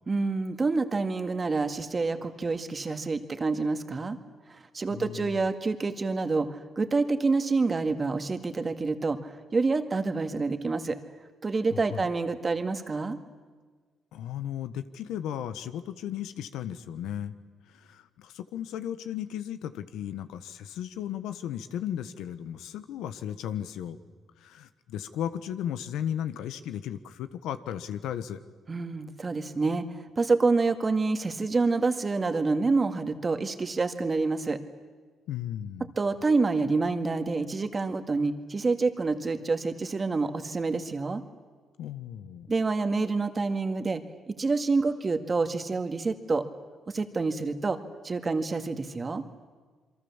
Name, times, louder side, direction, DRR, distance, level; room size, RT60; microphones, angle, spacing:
voice 1, 0.1-4.2 4.7-11.0 11.4-13.2 28.7-34.6 36.0-41.2 42.5-44.0 44.3-46.4 46.9-47.8 48.0-49.2, right 3 dB, 30° right, 8 dB, 1.9 m, -27 dB
voice 2, 4.9-5.4 11.7-12.1 14.1-17.3 17.8-24.0 24.4-28.4 35.3-35.9 41.8-42.5, left 10 dB, 90° left, 11 dB, 1.2 m, -35 dB
27.5 x 23.5 x 7.3 m, 1.5 s
cardioid pair, 90°, 0 cm